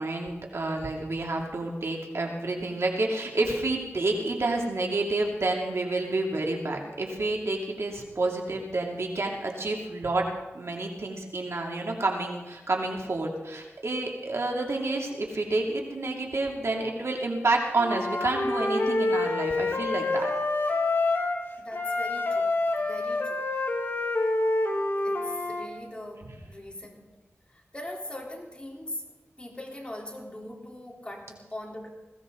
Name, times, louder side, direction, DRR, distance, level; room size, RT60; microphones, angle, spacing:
voice 1, 0.0-10.2 10.5-20.3 26.3-26.4, right 2 dB, 65° right, 0 dB, 2.7 m, -29 dB
Wind instrument woodwind instrument, 17.8-21.4 21.7-25.7, left 2 dB, 50° left, 2.2 m, -27 dB
voice 2, 21.6-23.5 25.0-27.1 27.5-29.1 29.4-31.9, left 1 dB, 20° left, -1 dB, 3.7 m, -41 dB
21.0 x 16.0 x 3.9 m, 1.1 s
wide cardioid pair, 55°, 5 cm